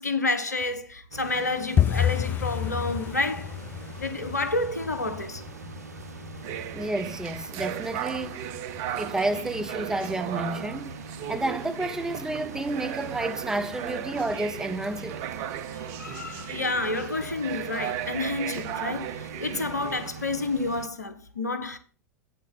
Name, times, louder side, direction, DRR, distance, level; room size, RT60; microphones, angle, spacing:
voice 1, 0.0-3.6 4.0-5.4 15.9-21.8, left 2 dB, 80° left, 1.0 m, -29 dB
sound 1, 1.1-20.9, right 4 dB, 75° right, 0.9 m, -42 dB
sound 2, 1.8-12.5 12.7-13.4 13.7-14.0 14.3-14.6 14.9-15.0 15.5-16.1 16.4-16.5 17.0-17.1, left 10 dB, 20° left, 0.4 m, -32 dB
sound 3, 6.4-20.1, right 11 dB, 45° right, 0.6 m, -36 dB
voice 2, 6.7-8.4 8.9-10.9 11.3-15.2, right 2 dB, 5° right, 0.8 m, -30 dB
8.8 x 6.8 x 3.9 m
figure-of-eight pair, 85°, 9 cm